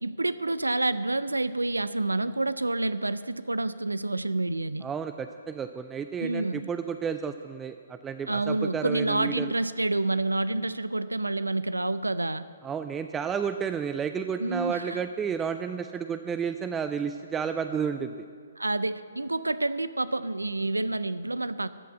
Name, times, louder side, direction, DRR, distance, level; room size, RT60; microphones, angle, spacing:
voice 1, 0.0-4.9 6.2-6.7 8.3-12.4 14.4-15.0 18.6-21.7, right 2 dB, 85° right, 15 dB, 0.4 m, -28 dB
voice 2, 4.8-9.5 12.6-18.1, right 7 dB, 15° right, 9 dB, 0.4 m, -31 dB
13.5 x 5.8 x 8.1 m, 2.1 s
figure-of-eight pair, 130°, 0 cm